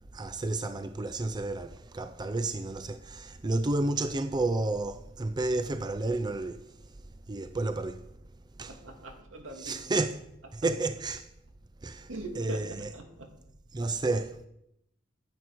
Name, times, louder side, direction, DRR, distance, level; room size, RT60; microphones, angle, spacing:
voice 1, 0.1-6.6 7.3-8.0 8.6-8.8 9.6-10.2 10.5-11.3 11.8-12.1 12.4-12.9 13.7-14.5, right 2 dB, 20° right, 0.4 m, -31 dB
voice 2, 8.7-9.8 12.1-13.3, right 2 dB, 80° right, 2.0 m, -41 dB
10.5 x 9.5 x 4.6 m
head